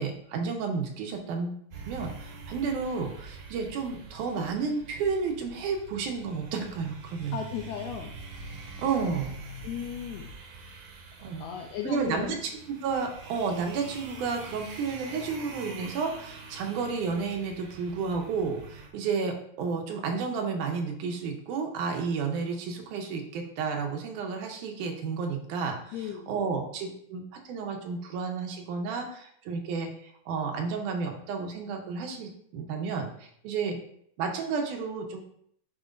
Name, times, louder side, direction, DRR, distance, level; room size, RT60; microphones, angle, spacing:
voice 1, 0.0-7.4 8.8-9.3 11.2-11.5 11.9-12.4 12.7-25.9 26.3-33.8 34.2-35.2, right 5 dB, 80° right, 3 dB, 2.3 m, -31 dB
sound 1, 1.7-18.9, right 3 dB, 60° right, 1.8 m, -45 dB
voice 2, 7.3-8.1 9.6-10.3 11.4-12.4 25.9-26.3, left 9 dB, 80° left, 2 dB, 1.7 m, -35 dB
8.7 x 4.8 x 2.5 m, 0.67 s
omnidirectional pair, 3.6 m